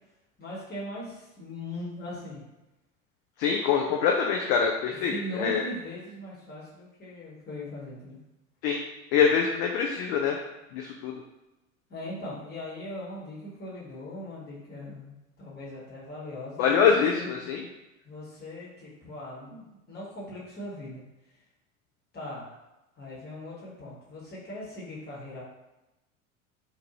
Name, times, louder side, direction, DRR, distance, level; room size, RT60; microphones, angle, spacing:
voice 1, 0.4-2.4 5.0-8.2 11.9-17.3 18.0-21.0 22.1-22.5 23.0-25.4, left 1 dB, 25° left, -6 dB, 1.3 m, -40 dB
voice 2, 3.4-5.6 8.6-8.8 9.1-10.4 10.7-11.1 16.6-17.7, left 6 dB, 40° left, 1 dB, 0.4 m, -24 dB
2.7 x 2.4 x 2.8 m, 0.98 s
figure-of-eight pair, 75°, 42 cm